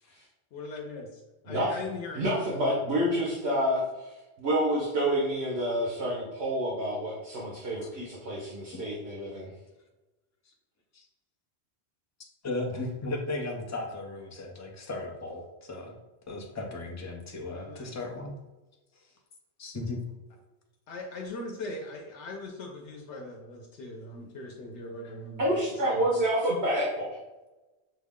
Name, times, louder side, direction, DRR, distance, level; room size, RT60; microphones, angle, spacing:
voice 1, 0.5-2.3 17.5-17.9 20.9-26.0, left 2 dB, 90° left, 0 dB, 1.0 m, -40 dB
voice 2, 2.1-4.1 4.4-9.5 25.4-27.2, equal, 70° right, -6 dB, 1.3 m, -28 dB
voice 3, 12.4-15.9 16.3-18.4 18.9-19.1 19.6-20.0 25.0-25.1, left 2 dB, 20° left, 1 dB, 0.5 m, -36 dB
6.2 x 2.1 x 3.6 m, 1.1 s
omnidirectional pair, 1.1 m